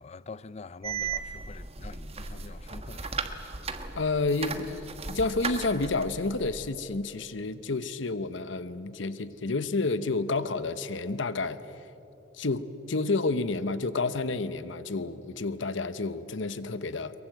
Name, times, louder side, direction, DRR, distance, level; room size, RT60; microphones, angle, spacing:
voice 1, 0.0-3.3, left 4 dB, 35° left, 0.5 m, -45 dB
sound 1, 0.8-6.7, right 5 dB, 30° right, 1.2 m, -36 dB
voice 2, 3.9-11.8 12.4-17.1, left 3 dB, 70° left, 0.9 m, -30 dB
23.5 x 22.5 x 8.0 m
head